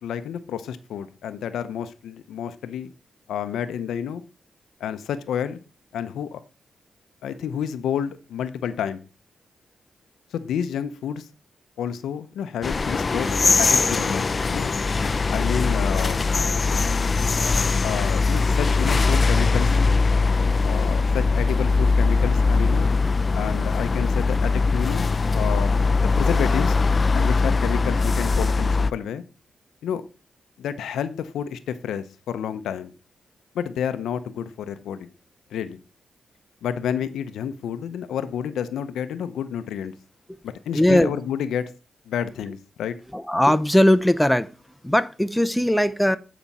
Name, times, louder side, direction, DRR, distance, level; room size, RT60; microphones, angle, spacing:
voice 1, 0.0-2.9 3.3-4.2 4.8-5.6 5.9-6.4 7.2-9.1 10.3-11.3 11.8-14.7 15.3-16.3 17.8-19.8 20.6-22.9 23.3-25.1 25.3-26.8 27.1-29.2 29.8-30.0 30.6-32.9 33.5-35.1 35.5-35.8 36.6-40.0 40.4-41.7 42.1-43.0, left 8 dB, 90° left, 0.6 m, -30 dB
sound 1, 12.6-28.9, left 4 dB, 45° left, 0.4 m, -21 dB
voice 2, 40.7-41.1 43.1-44.5 44.8-46.2, left 1 dB, 5° left, 0.7 m, -19 dB
9.1 x 5.0 x 4.2 m
cardioid pair, 60°, 0 cm